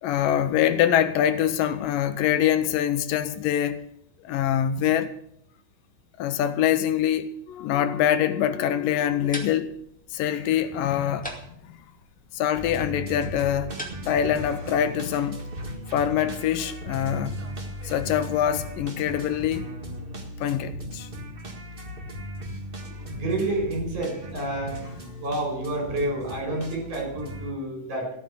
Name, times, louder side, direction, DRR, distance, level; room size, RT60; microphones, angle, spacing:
voice 1, 0.0-3.8 4.2-5.1 6.2-9.7 10.1-11.3 12.3-13.7 14.1-15.4 15.9-17.4 17.8-19.7 20.4-21.1, left 10 dB, 80° left, 2.5 m, -24 dB
sound 1, 8.9-14.4, equal, 5° left, 1.2 m, -43 dB
sound 2, 12.5-27.5, equal, 35° right, 0.9 m, -37 dB
voice 2, 23.1-24.8 25.2-28.1, right 2 dB, 60° right, 6.8 m, -29 dB
15.0 x 8.9 x 7.8 m
omnidirectional pair, 4.0 m